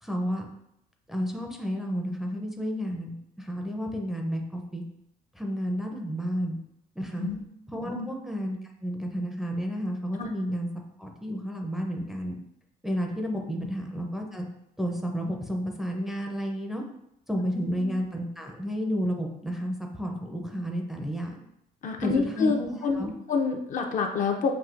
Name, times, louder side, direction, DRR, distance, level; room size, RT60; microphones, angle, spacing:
voice 1, 0.0-0.5 1.1-4.8 5.3-6.6 7.0-7.3 7.7-10.7 11.0-12.3 12.8-14.5 14.8-16.8 17.3-21.3 22.0-23.1, equal, ahead, 1 dB, 0.5 m, -31 dB
voice 2, 17.6-17.9 21.8-24.5, left 5 dB, 50° left, 3 dB, 0.6 m, -28 dB
6.0 x 2.6 x 2.5 m, 0.79 s
cardioid pair, 110°, 17 cm